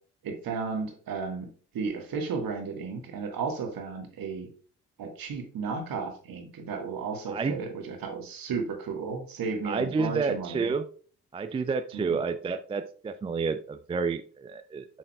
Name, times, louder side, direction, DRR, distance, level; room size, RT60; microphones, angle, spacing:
voice 1, 0.2-1.5 1.7-4.5 5.0-10.7 11.9-12.2, right 5 dB, 50° right, 3 dB, 1.7 m, -34 dB
voice 2, 7.3-7.6 9.6-10.9 11.3-14.9, right 4 dB, 15° right, 10 dB, 0.3 m, -30 dB
7.6 x 5.6 x 2.3 m, 0.43 s
figure-of-eight pair, 45°, 43 cm